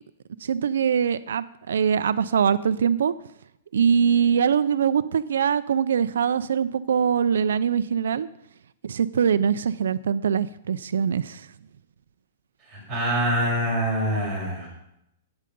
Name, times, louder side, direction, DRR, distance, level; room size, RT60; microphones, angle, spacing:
voice 1, 0.4-3.1 3.7-8.3 8.8-11.5, right 7 dB, 85° right, 13 dB, 0.5 m, -23 dB
voice 2, 12.7-14.7, equal, 5° right, -9 dB, 6.5 m, -25 dB
14.0 x 9.0 x 5.3 m, 0.81 s
hypercardioid pair, 170°, 0 cm